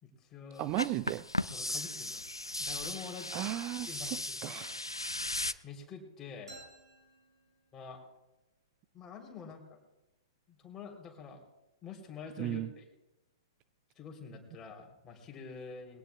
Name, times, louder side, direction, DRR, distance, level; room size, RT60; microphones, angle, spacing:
voice 1, 0.0-0.7 1.5-2.2 2.6-3.4 3.9-4.1 4.4-4.7 5.6-6.5 7.7-8.0 8.9-9.8 10.5-11.4 11.8-12.9 14.0-16.0, left 5 dB, 20° left, 1 dB, 3.4 m, -47 dB
voice 2, 0.6-1.3 3.3-4.2 4.4-4.8 12.4-12.7, right 15 dB, 30° right, 15 dB, 0.4 m, -35 dB
sound 1, 0.7-5.5, left 2 dB, 90° left, 0.5 m, -37 dB
sound 2, 6.5-8.2, right 2 dB, 80° right, 5.8 m, -55 dB
22.0 x 17.0 x 2.3 m, 0.96 s
figure-of-eight pair, 110°, 2 cm